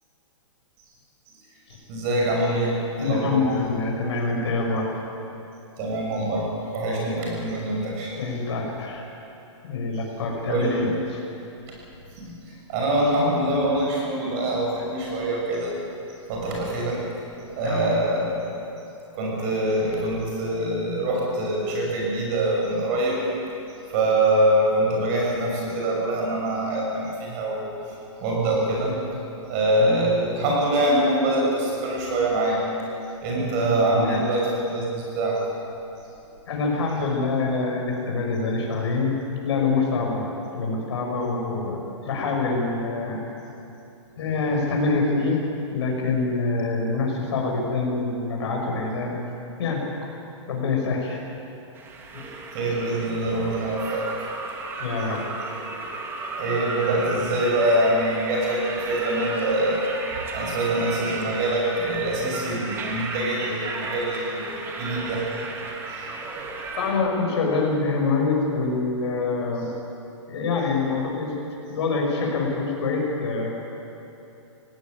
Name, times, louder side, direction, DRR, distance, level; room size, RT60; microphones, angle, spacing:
voice 1, 1.9-3.5 5.8-8.1 10.5-10.9 12.2-12.3 12.7-15.7 16.3-17.0 17.6-18.6 19.2-23.2 23.9-27.7 28.2-29.0 29.5-32.6 33.2-34.5 34.7-35.4 52.5-54.1 56.4-59.8 60.3-65.3, right 1 dB, 30° right, -2 dB, 6.5 m, -24 dB
voice 2, 3.0-4.9 8.1-9.0 9.6-11.2 17.6-17.9 29.8-30.0 33.6-34.2 36.5-39.1 39.4-43.2 44.2-45.4 45.7-49.2 49.6-49.8 50.5-51.2 52.1-52.3 54.8-55.3 66.7-69.6 70.3-71.3 71.7-73.5, left 3 dB, 55° left, 0 dB, 6.1 m, -25 dB
sound 1, 51.7-66.9, right 3 dB, 15° right, 1.6 m, -34 dB
18.0 x 17.5 x 9.3 m, 2.9 s
hypercardioid pair, 165°, 16 cm